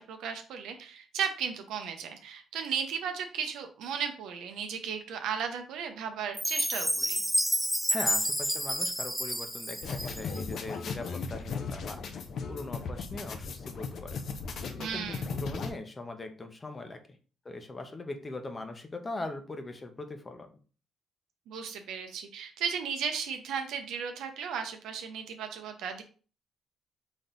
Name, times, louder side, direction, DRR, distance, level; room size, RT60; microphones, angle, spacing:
voice 1, 0.0-7.2 14.8-15.3 21.5-26.0, right 7 dB, 85° right, 6 dB, 0.7 m, -35 dB
Chime, 6.3-10.5, equal, ahead, 0.4 m, -30 dB
voice 2, 7.9-12.2 12.5-14.2 14.7-17.2 17.4-20.5, left 2 dB, 25° left, 6 dB, 0.9 m, -40 dB
sound 1, 9.8-15.7, left 5 dB, 65° left, 0.7 m, -37 dB
4.1 x 3.3 x 3.9 m, 0.38 s
cardioid pair, 90°, 0 cm